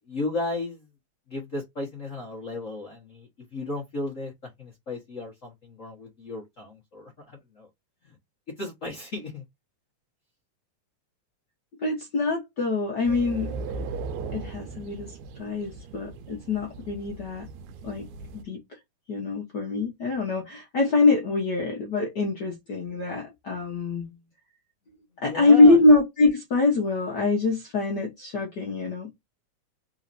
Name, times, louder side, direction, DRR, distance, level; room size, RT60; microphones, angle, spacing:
voice 1, 0.1-0.8 1.3-7.7 8.0-8.2 8.6-9.4 24.0-24.3 25.2-25.8, left 2 dB, 45° left, 1.0 m, -35 dB
voice 2, 11.8-13.5 14.3-17.5 17.8-18.1 18.3-18.6 19.1-24.1 25.2-29.1, left 3 dB, 65° left, 1.0 m, -23 dB
sound 1, 13.0-18.4, right 4 dB, 85° right, 2.1 m, -38 dB
4.2 x 3.9 x 2.6 m
omnidirectional pair, 3.4 m